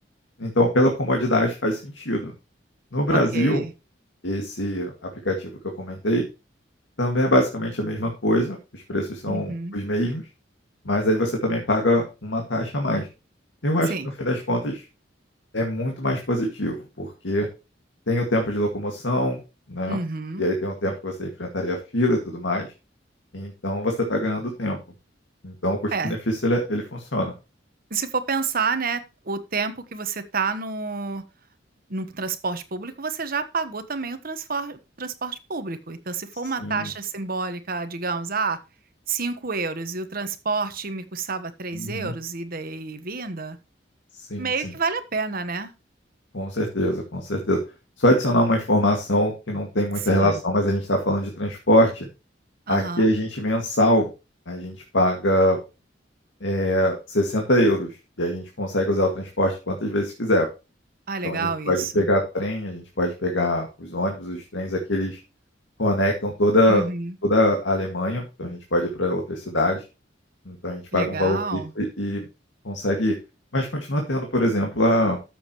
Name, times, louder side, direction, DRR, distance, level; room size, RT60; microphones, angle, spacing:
voice 1, 0.4-2.3 2.9-3.6 4.2-4.9 5.2-5.5 5.8-6.2 7.0-10.2 10.9-13.1 13.6-13.9 14.2-14.8 15.5-17.5 18.1-19.4 19.7-20.0 20.4-22.7 23.3-24.8 25.4-27.3 36.6-36.9 41.7-42.1 44.1-44.5 46.3-47.6 48.0-52.1 52.7-54.1 54.5-55.6 56.4-60.5 61.2-65.2 65.8-66.8 67.2-69.8 70.5-72.3 72.6-73.1 73.5-75.2, left 1 dB, 90° left, 2.1 m, -23 dB
voice 2, 3.1-3.7 9.3-9.8 13.9-14.1 19.9-20.5 25.9-26.2 27.9-31.2 31.9-38.6 39.1-43.6 44.4-45.7 50.1-50.4 52.7-53.1 61.1-62.1 66.7-67.2 70.9-71.7, right 4 dB, 55° right, 1.3 m, -29 dB
13.0 x 7.3 x 3.1 m
head